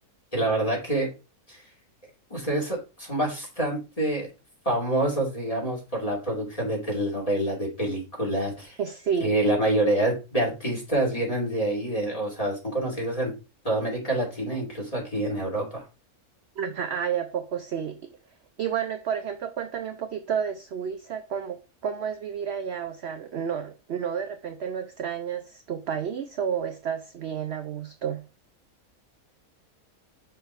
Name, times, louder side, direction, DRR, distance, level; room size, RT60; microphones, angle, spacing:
voice 1, 0.3-1.1 1.5-1.6 2.3-4.3 4.6-8.8 9.2-13.3 13.6-15.8, right 1 dB, 25° left, 2.8 m, -27 dB
voice 2, 8.8-9.4 16.6-18.0 18.6-21.6 21.8-28.2, right 8 dB, 60° right, 0.7 m, -31 dB
5.7 x 4.6 x 4.4 m
omnidirectional pair, 1.5 m